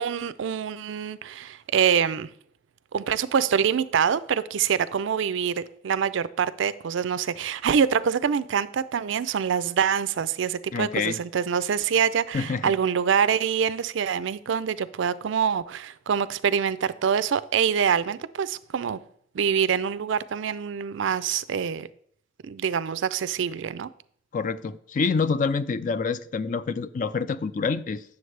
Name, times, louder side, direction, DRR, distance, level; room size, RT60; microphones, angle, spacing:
voice 1, 0.0-2.3 2.9-19.0 19.3-21.9 22.4-23.9, right 7 dB, 70° right, 0.4 m, -25 dB
voice 2, 10.7-11.2 12.3-12.7 24.3-28.0, left 5 dB, 40° left, 0.4 m, -27 dB
9.3 x 7.0 x 3.3 m
head